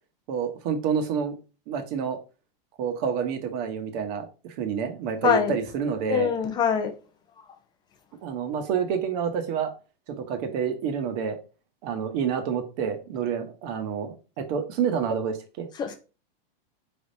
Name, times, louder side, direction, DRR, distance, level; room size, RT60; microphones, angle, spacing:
voice 1, 0.3-1.3 1.7-2.2 2.8-6.3 8.2-9.7 10.2-11.4 11.8-15.7, right 7 dB, 45° right, 1.0 m, -28 dB
voice 2, 6.1-6.9 15.8-16.0, left 7 dB, 15° left, 0.4 m, -23 dB
4.8 x 3.5 x 2.7 m
supercardioid pair, 145°, 30 cm